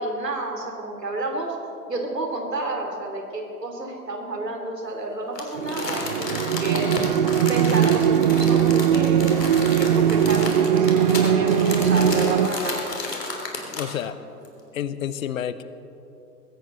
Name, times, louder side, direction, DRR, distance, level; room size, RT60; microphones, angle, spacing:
voice 1, 0.0-1.6 1.9-6.9 7.5-9.4 9.8-12.8, right 2 dB, 85° right, 2 dB, 3.5 m, -30 dB
Crumpling crinkling, 5.3-14.0 14.4-14.5, left 3 dB, 85° left, 3.5 m, -32 dB
sound 1, 5.6-12.5, right 9 dB, 30° right, 0.5 m, -20 dB
voice 2, 13.7-14.2 14.7-15.6, left 10 dB, 55° left, 14 dB, 1.0 m, -29 dB
21.0 x 17.0 x 4.1 m, 2.8 s
figure-of-eight pair, 120°, 48 cm